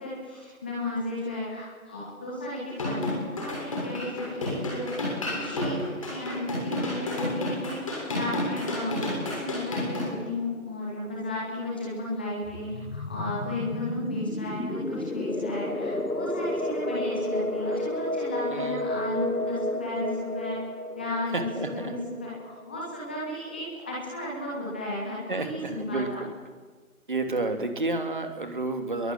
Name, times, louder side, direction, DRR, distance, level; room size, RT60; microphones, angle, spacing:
voice 1, 0.0-4.9 5.3-7.8 8.1-20.6 21.0-26.2, left 1 dB, 5° left, -5 dB, 1.8 m, -34 dB
sound 1, 2.7-10.1, left 1 dB, 25° left, 6.6 m, -31 dB
voice 2, 8.9-9.4 18.5-18.8 21.3-21.9 25.3-26.3 27.1-29.1, right 2 dB, 35° right, 6 dB, 3.0 m, -31 dB
sound 2, 12.4-22.9, left 2 dB, 85° left, 1.6 m, -32 dB
28.0 x 22.5 x 8.9 m, 1.4 s
figure-of-eight pair, 165°, 43 cm